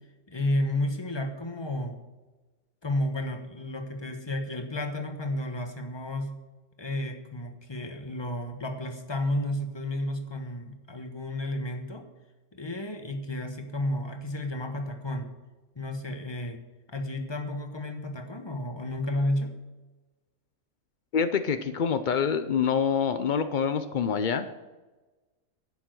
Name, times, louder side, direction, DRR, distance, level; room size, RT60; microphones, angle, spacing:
voice 1, 0.3-2.0 2.8-6.3 6.8-12.1 12.5-15.3 15.7-16.6 16.9-19.5, left 1 dB, 20° left, 5 dB, 1.1 m, -32 dB
voice 2, 21.1-24.5, left 6 dB, 80° left, 10 dB, 0.4 m, -26 dB
11.5 x 7.2 x 7.7 m, 1.2 s
omnidirectional pair, 1.6 m